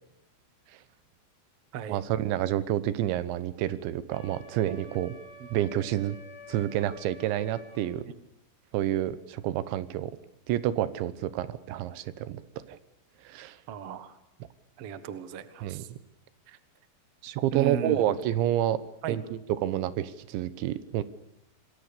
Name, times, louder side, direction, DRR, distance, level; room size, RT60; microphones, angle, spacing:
voice 1, 1.9-5.2 5.5-6.2 6.5-8.1 8.7-10.1 10.5-12.8 13.2-13.6 15.6-15.8 17.2-18.8 19.1-21.0, right 12 dB, 90° right, 15 dB, 3.4 m, -29 dB
Wind instrument woodwind instrument, 4.1-7.9, equal, 20° left, 8.2 m, -49 dB
voice 2, 13.7-14.1 14.8-15.9 16.5-16.6 17.5-18.1 19.0-19.2, right 7 dB, 65° right, 12 dB, 1.4 m, -35 dB
27.5 x 22.0 x 6.8 m, 0.78 s
omnidirectional pair, 5.1 m